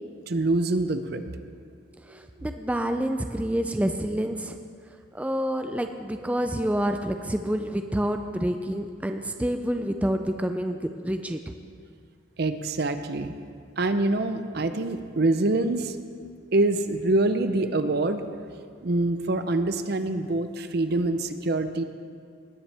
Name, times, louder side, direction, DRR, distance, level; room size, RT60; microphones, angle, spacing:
voice 1, 0.3-1.2 12.4-13.3 13.8-16.0 16.5-18.2 18.8-21.8, right 2 dB, 50° right, 9 dB, 0.6 m, -25 dB
voice 2, 2.1-4.6 5.1-11.5, equal, 5° right, 6 dB, 0.4 m, -28 dB
19.5 x 9.9 x 3.4 m, 2.2 s
head